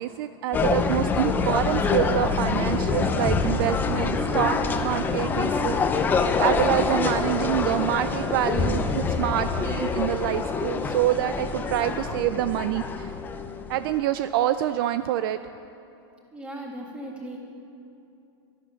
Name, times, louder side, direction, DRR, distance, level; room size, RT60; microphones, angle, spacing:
voice 1, 0.0-5.8 6.0-13.1 13.7-15.4, right 12 dB, 55° right, 11 dB, 0.4 m, -26 dB
sound 1, 0.5-14.0, left 4 dB, 15° left, 0.6 m, -25 dB
voice 2, 16.3-17.4, right 1 dB, 5° right, -1 dB, 2.0 m, -37 dB
12.5 x 11.0 x 6.4 m, 2.8 s
supercardioid pair, 150°, 15 cm